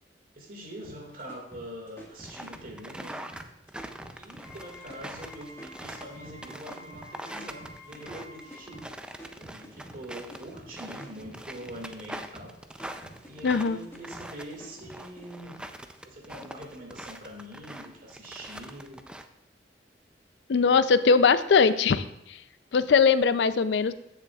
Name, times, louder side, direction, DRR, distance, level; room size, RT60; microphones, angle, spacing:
voice 1, 0.4-3.2 4.2-8.9 9.4-12.6 13.3-15.6 16.0-19.1, equal, 50° right, 1 dB, 1.9 m, -44 dB
sound 1, 0.8-15.3, right 1 dB, 15° left, 1.6 m, -49 dB
sound 2, 2.2-19.3, right 1 dB, 5° right, 0.4 m, -43 dB
Wind instrument woodwind instrument, 4.3-8.8, left 1 dB, 90° left, 2.4 m, -50 dB
voice 2, 13.4-13.8 20.5-22.0 22.7-23.9, left 5 dB, 75° left, 13 dB, 0.4 m, -21 dB
15.0 x 6.7 x 2.3 m, 0.82 s
head